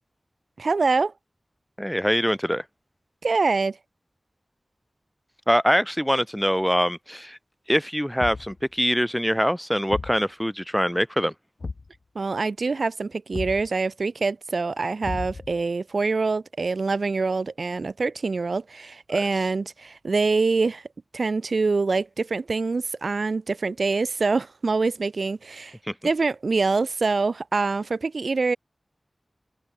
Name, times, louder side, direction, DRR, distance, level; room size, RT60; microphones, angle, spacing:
voice 1, 0.6-1.1 3.2-3.8 12.1-20.8 21.1-25.8 26.0-28.6, right 4 dB, 80° right, 1.1 m, -25 dB
voice 2, 1.8-2.6 5.5-7.4 7.7-11.3 19.1-19.2, equal, ahead, 1.5 m, -23 dB
Thump thud, 8.2-8.6 9.9-10.2 11.6-12.0 13.3-13.7 15.0-15.6, left 3 dB, 75° left, 0.6 m, -34 dB
wide cardioid pair, 70°, 0 cm